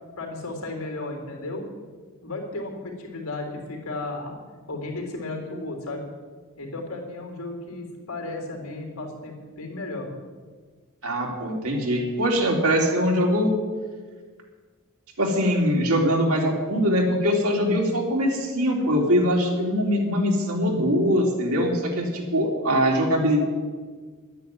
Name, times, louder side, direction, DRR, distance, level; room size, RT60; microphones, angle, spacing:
voice 1, 0.2-1.6 2.2-4.4 4.7-6.0 6.6-10.1, left 2 dB, 90° left, 2 dB, 3.5 m, -34 dB
voice 2, 11.0-13.5 15.2-23.5, equal, 80° right, 0 dB, 3.2 m, -22 dB
11.0 x 9.4 x 9.2 m, 1.5 s
head